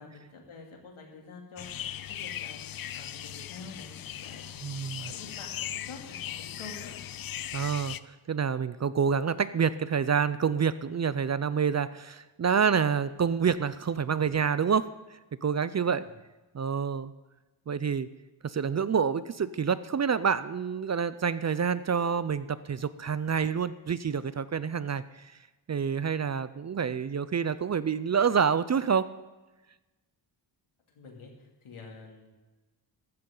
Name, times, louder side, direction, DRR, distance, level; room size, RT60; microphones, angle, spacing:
voice 1, 0.0-7.0 15.7-16.1 31.0-32.3, left 4 dB, 85° left, 1 dB, 2.9 m, -48 dB
sound 1, 1.6-8.0, left 11 dB, 50° left, 0.4 m, -39 dB
voice 2, 4.6-5.1 7.5-14.9 15.4-16.1 16.5-17.1 17.7-18.1 18.4-25.0 25.7-29.1, right 6 dB, 35° right, 15 dB, 0.4 m, -27 dB
14.5 x 13.5 x 3.9 m, 1.1 s
wide cardioid pair, 130°, 48 cm